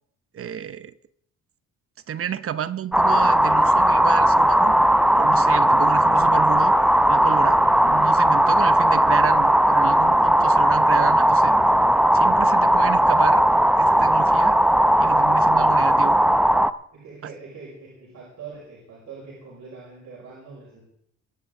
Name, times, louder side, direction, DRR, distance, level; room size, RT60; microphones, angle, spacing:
voice 1, 0.3-1.0 2.1-4.8 5.2-6.7 7.1-11.6 12.1-13.5 13.8-14.6 15.0-16.2, right 9 dB, 45° right, 0.8 m, -30 dB
sound 1, 2.9-16.7, right 1 dB, 5° right, 0.6 m, -17 dB
voice 2, 16.9-20.8, right 4 dB, 70° right, 5.6 m, -42 dB
22.5 x 10.0 x 3.8 m
cardioid pair, 90°, 30 cm